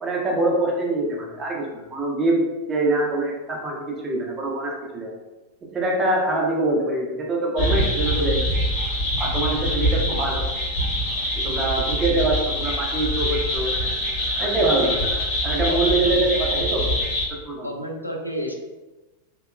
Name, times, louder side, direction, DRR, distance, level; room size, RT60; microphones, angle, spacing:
voice 1, 0.0-5.1 5.7-8.5 9.2-10.4 11.4-13.7 14.4-15.0 15.4-16.9 17.5-17.7, right 2 dB, 20° right, -1 dB, 0.5 m, -24 dB
sound 1, 7.6-17.2, equal, 50° left, 1.0 m, -24 dB
voice 2, 15.7-16.7 17.6-18.5, equal, 90° left, 1 dB, 0.3 m, -31 dB
2.8 x 2.1 x 2.2 m, 1.1 s
figure-of-eight pair, 90°, 0 cm